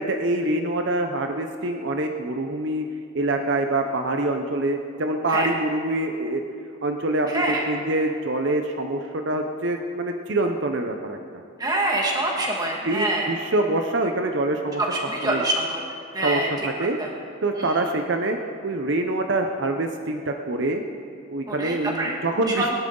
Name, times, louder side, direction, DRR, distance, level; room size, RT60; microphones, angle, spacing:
voice 1, 0.0-2.8 3.1-6.4 6.8-11.2 12.8-14.8 15.2-15.4 16.2-17.0 17.4-18.4 18.6-20.8 21.3-22.7, right 2 dB, 60° right, 4 dB, 0.7 m, -25 dB
voice 2, 7.3-7.7 11.6-13.3 14.8-15.8 16.1-16.5 16.8-17.1 17.6-17.8 21.5-22.2 22.5-22.7, right 1 dB, 20° right, -1 dB, 1.8 m, -25 dB
22.0 x 11.5 x 3.9 m, 2.4 s
head